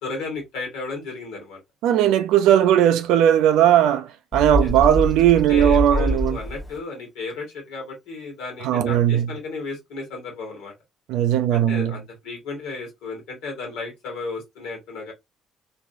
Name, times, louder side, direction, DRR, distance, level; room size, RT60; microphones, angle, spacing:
voice 1, 0.0-1.6 4.6-4.7 5.5-10.7 11.5-15.1, left 3 dB, 70° left, 1.4 m, -34 dB
voice 2, 1.8-6.4 8.6-9.3 11.1-11.9, right 11 dB, 65° right, 0.3 m, -18 dB
Bird, 4.3-6.8, equal, ahead, 0.8 m, -25 dB
3.1 x 2.6 x 2.5 m
hypercardioid pair, 50°, 0 cm